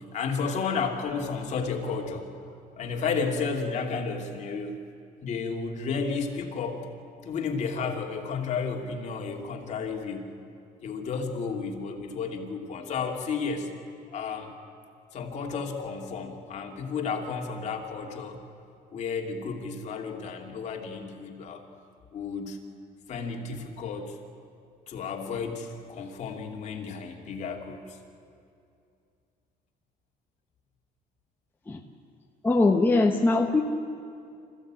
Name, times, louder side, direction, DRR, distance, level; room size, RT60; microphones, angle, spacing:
voice 1, 0.1-2.3 2.8-4.8 5.2-6.9 7.2-10.3 10.8-13.7 14.1-14.5 15.1-18.4 18.9-21.6 22.1-22.6 23.1-24.2 24.9-28.0, left 5 dB, 45° left, 1 dB, 2.7 m, -32 dB
voice 2, 32.4-33.6, left 3 dB, 10° left, 1 dB, 1.0 m, -21 dB
26.5 x 15.5 x 8.9 m, 2.5 s
cardioid pair, 155°, 17 cm